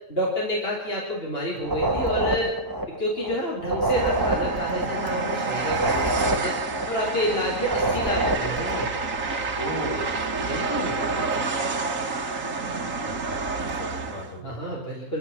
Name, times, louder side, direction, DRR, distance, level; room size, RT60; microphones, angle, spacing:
voice 1, 0.1-2.5 3.0-6.6 6.9-8.9 10.5-10.9 14.3-15.2, equal, 45° left, -2 dB, 4.1 m, -28 dB
sound 1, 1.6-3.4 3.6-7.4 7.6-9.0, right 1 dB, 15° right, 2.2 m, -27 dB
Train, 3.9-14.4, right 3 dB, 70° right, 1.9 m, -29 dB
voice 2, 9.6-10.2 12.8-14.6, equal, 65° left, 0 dB, 6.1 m, -36 dB
26.5 x 14.0 x 7.3 m, 0.89 s
omnidirectional pair, 1.4 m